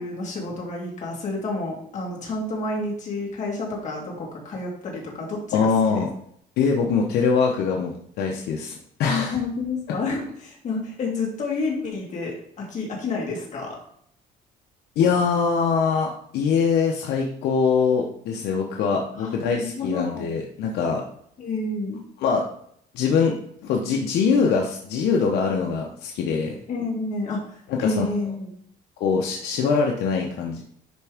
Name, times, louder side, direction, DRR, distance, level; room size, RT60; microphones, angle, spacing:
voice 1, 0.0-6.0 9.1-13.8 19.1-20.3 21.4-22.0 26.7-28.5, left 3 dB, 45° left, -3 dB, 2.9 m, -29 dB
voice 2, 5.5-6.1 6.6-7.9 8.2-9.3 15.0-21.0 22.2-22.4 22.9-23.3 23.6-26.6 27.7-28.1 29.0-30.6, left 5 dB, 75° left, 1 dB, 0.9 m, -23 dB
10.5 x 3.6 x 3.5 m, 0.67 s
cardioid pair, 110°, 17 cm